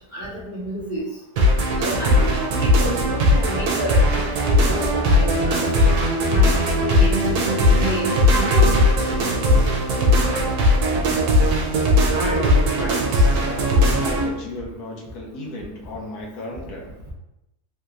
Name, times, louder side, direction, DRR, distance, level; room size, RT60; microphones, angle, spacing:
voice 1, 0.1-1.1 1.8-5.6 6.3-7.2 7.6-8.1, right 1 dB, 50° right, -9 dB, 0.5 m, -30 dB
sound 1, 1.4-14.3, left 1 dB, 75° right, 1.1 m, -18 dB
voice 2, 12.1-16.9, left 1 dB, 80° left, -1 dB, 1.1 m, -33 dB
3.2 x 2.8 x 2.4 m, 0.87 s
omnidirectional pair, 1.7 m